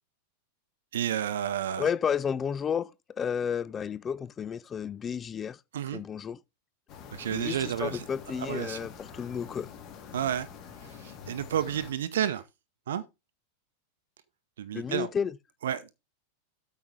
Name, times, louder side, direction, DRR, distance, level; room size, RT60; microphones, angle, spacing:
voice 1, 0.9-1.9 5.7-6.0 7.1-8.0 8.4-8.8 10.1-10.5 10.8-12.4 12.9-13.0 14.6-15.1 15.6-15.9, right 10 dB, 60° right, 0.7 m, -31 dB
voice 2, 1.8-5.6 5.9-6.4 7.3-9.7 14.7-15.3, left 7 dB, 20° left, 0.4 m, -32 dB
sound 1, 6.9-11.9, left 7 dB, 35° left, 2.3 m, -46 dB
8.4 x 5.8 x 4.7 m
figure-of-eight pair, 90°, 0 cm